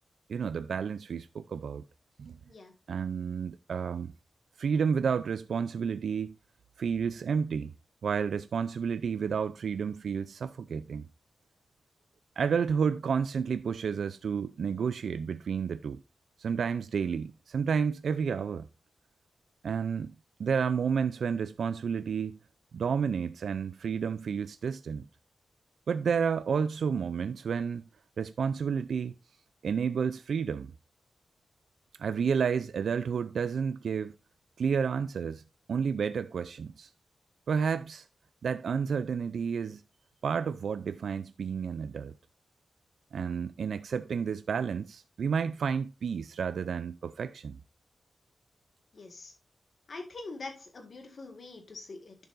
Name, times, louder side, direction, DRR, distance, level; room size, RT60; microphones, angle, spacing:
voice 1, 0.3-1.8 2.2-2.4 2.9-4.1 4.6-6.3 6.8-7.7 8.0-11.1 12.4-16.0 16.4-18.7 19.6-20.1 20.4-22.4 22.7-25.0 25.9-27.8 28.2-29.1 29.6-30.7 32.0-34.1 34.6-35.4 35.7-36.9 37.5-38.0 38.4-39.8 40.2-42.1 43.1-47.6, right 6 dB, 90° right, 0.3 m, -30 dB
voice 2, 48.9-49.3 49.9-52.2, left 3 dB, 50° left, 1.8 m, -44 dB
10.5 x 6.8 x 2.5 m
wide cardioid pair, 160°, 0 cm